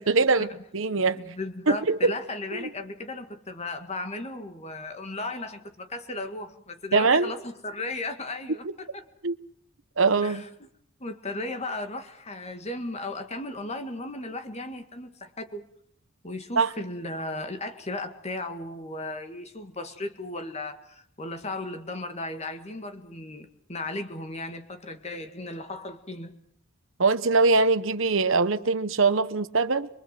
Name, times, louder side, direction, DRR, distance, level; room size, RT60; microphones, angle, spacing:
voice 1, 0.0-1.2 1.7-2.1 2.5-2.7 6.9-7.3 9.2-9.3 10.0-10.4 16.6-16.7 27.0-29.9, right 4 dB, 65° right, 1.1 m, -22 dB
voice 2, 1.1-9.0 10.2-10.5 11.0-15.7 16.2-26.3, left 2 dB, 30° left, 2.0 m, -36 dB
24.0 x 23.0 x 7.6 m
head